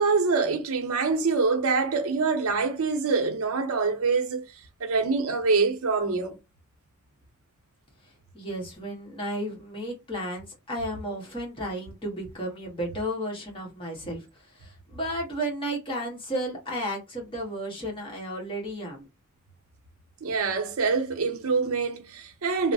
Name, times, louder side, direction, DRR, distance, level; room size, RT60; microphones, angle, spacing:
voice 1, 0.0-4.5 4.8-6.4 20.2-22.7, right 4 dB, 85° right, 0.6 m, -25 dB
voice 2, 8.3-14.2 14.5-19.1, equal, 25° left, 1.2 m, -33 dB
3.0 x 2.0 x 2.6 m
head